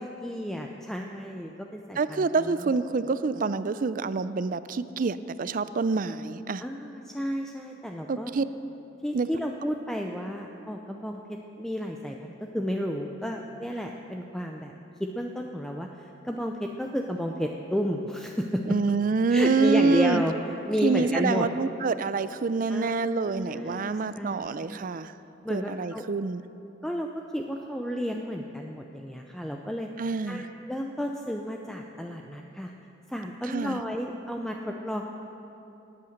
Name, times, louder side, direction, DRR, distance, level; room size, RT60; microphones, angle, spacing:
voice 1, 0.2-2.8 6.6-8.3 9.0-14.7 15.0-15.9 16.2-18.8 19.3-20.3 20.7-21.5 22.7-24.9 25.4-26.0 26.8-27.1 27.3-29.9 30.3-32.7 33.1-35.0, equal, 5° left, 2 dB, 0.5 m, -32 dB
voice 2, 2.0-6.6 8.1-8.4 9.1-9.3 18.7-20.2 20.8-25.1 25.5-26.4 30.0-30.5 33.5-33.8, right 4 dB, 45° right, 14 dB, 0.4 m, -26 dB
18.5 x 8.6 x 6.5 m, 2.9 s
head